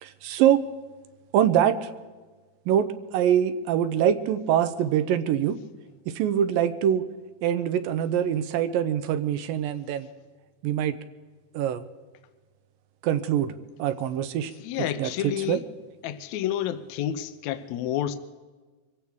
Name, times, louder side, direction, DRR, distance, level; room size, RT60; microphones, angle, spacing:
voice 1, 0.0-0.6 1.3-1.9 2.7-5.6 6.1-7.0 7.4-10.1 10.6-11.0 11.5-11.8 13.0-13.5 13.8-14.5 14.8-15.6, right 10 dB, 80° right, 11 dB, 2.3 m, -24 dB
voice 2, 14.6-15.6 16.0-18.2, left 11 dB, 85° left, 10 dB, 1.6 m, -29 dB
24.5 x 16.0 x 3.6 m, 1.3 s
omnidirectional pair, 4.3 m